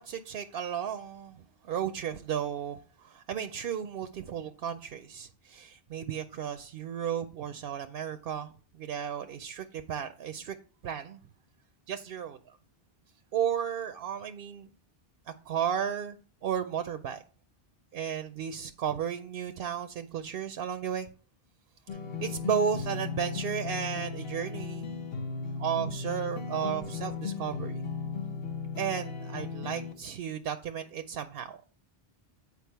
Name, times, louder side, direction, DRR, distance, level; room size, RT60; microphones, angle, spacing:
voice 1, 0.0-10.6 10.8-11.2 11.9-12.6 13.3-14.7 15.5-17.2 17.9-21.1 22.2-25.0 25.6-27.9 28.8-31.6, right 8 dB, 70° right, 0.8 m, -34 dB
sound 1, 21.9-29.9, left 5 dB, 70° left, 1.1 m, -36 dB
8.4 x 4.7 x 4.6 m
omnidirectional pair, 1.0 m